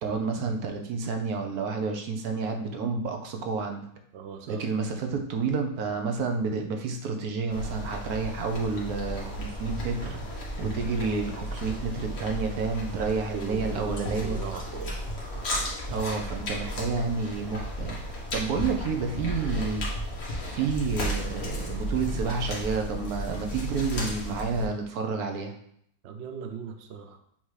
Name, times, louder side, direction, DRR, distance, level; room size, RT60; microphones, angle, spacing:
voice 1, 0.0-3.9 4.5-10.2 10.6-14.4 15.9-18.0 18.3-19.8 20.5-25.5, right 4 dB, 60° right, 4 dB, 1.1 m, -30 dB
voice 2, 4.1-4.7 13.2-15.0 26.0-27.2, right 7 dB, 85° right, 5 dB, 0.6 m, -39 dB
sound 1, 7.5-24.7, equal, 40° left, 1.4 m, -34 dB
7.4 x 2.9 x 4.8 m, 0.68 s
omnidirectional pair, 2.0 m